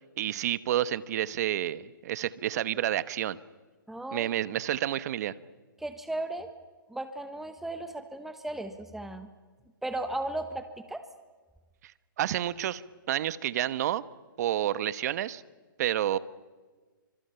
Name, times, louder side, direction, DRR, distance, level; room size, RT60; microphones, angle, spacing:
voice 1, 0.0-3.4 4.1-5.3 11.8-11.9 12.2-12.8 13.1-14.0 14.4-15.4 15.8-16.2, right 12 dB, 50° right, 17 dB, 1.1 m, -29 dB
voice 2, 3.9-4.3 5.8-6.5 6.9-9.3 9.8-11.0, right 2 dB, ahead, 9 dB, 1.2 m, -36 dB
29.0 x 25.5 x 5.8 m, 1.4 s
hypercardioid pair, 135°, 11 cm